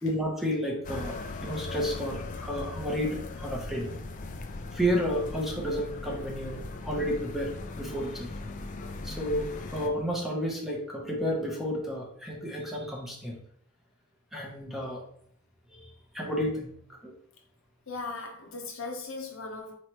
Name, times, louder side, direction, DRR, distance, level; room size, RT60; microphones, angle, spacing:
voice 1, 0.0-1.2 1.4-3.9 4.7-8.3 9.0-13.3 14.3-15.0 15.7-15.9 16.1-16.7 17.0-17.1, equal, ahead, -2 dB, 0.7 m, -31 dB
sound 1, 0.8-9.9, left 2 dB, 35° left, 0.3 m, -39 dB
voice 2, 17.9-19.7, left 3 dB, 60° left, 2 dB, 0.7 m, -38 dB
4.4 x 3.1 x 2.9 m, 0.62 s
head